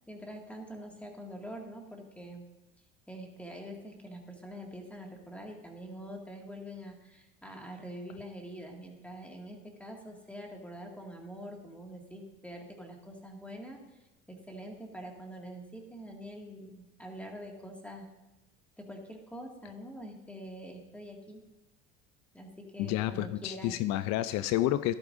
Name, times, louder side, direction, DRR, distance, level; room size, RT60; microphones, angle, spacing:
voice 1, 0.1-2.4 3.1-18.1 18.8-21.4 22.3-23.8, equal, 5° left, 1 dB, 2.0 m, -45 dB
voice 2, 22.8-24.9, left 14 dB, 65° left, 14 dB, 0.5 m, -30 dB
13.5 x 11.5 x 2.6 m, 1.1 s
supercardioid pair, 95°, 31 cm